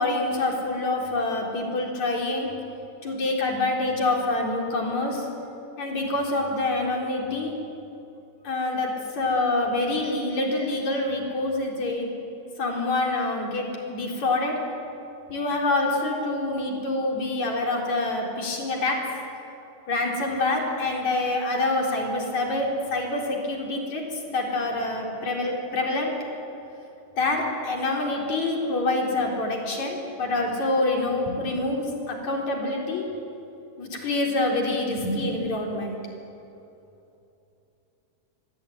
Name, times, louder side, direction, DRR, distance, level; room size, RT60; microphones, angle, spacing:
voice 1, 0.0-2.5 3.0-5.3 5.8-7.5 8.4-12.1 12.6-14.6 15.3-19.0 19.9-26.1 27.2-33.0 33.8-36.0, left 2 dB, 70° left, -1 dB, 5.5 m, -26 dB
26.5 x 22.0 x 9.7 m, 2.8 s
omnidirectional pair, 3.4 m